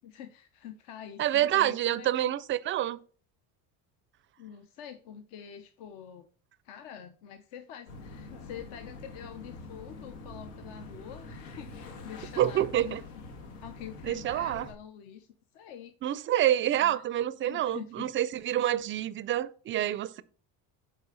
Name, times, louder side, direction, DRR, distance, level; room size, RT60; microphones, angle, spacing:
voice 1, 0.0-2.3 4.4-6.3 6.6-13.0 13.6-15.3 15.5-15.9 16.3-17.0 17.4-18.0, left 9 dB, 65° left, 0.9 m, -46 dB
voice 2, 1.2-3.0 12.4-13.0 14.0-14.7 16.0-20.2, right 12 dB, 30° right, 0.4 m, -27 dB
sound 1, 7.9-14.7, left 3 dB, 90° left, 1.8 m, -45 dB
8.7 x 4.3 x 3.9 m
cardioid pair, 130°, 43 cm